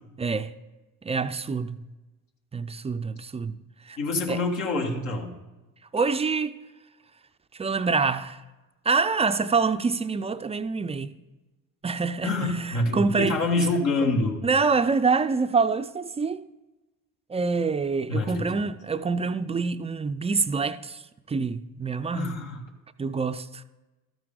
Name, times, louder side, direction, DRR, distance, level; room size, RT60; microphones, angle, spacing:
voice 1, 0.2-0.5 1.0-1.8 2.5-3.6 3.9-4.0 4.3-4.4 5.9-6.6 7.5-8.4 8.9-11.1 11.8-13.4 14.4-16.4 17.3-21.0 21.3-22.4 23.0-23.6, right 4 dB, 15° right, 0.3 m, -26 dB
voice 2, 4.0-5.3 12.2-14.4 18.1-18.5 22.1-22.6, left 2 dB, 75° left, 1.8 m, -26 dB
13.0 x 7.8 x 3.8 m
hypercardioid pair, 55°, 44 cm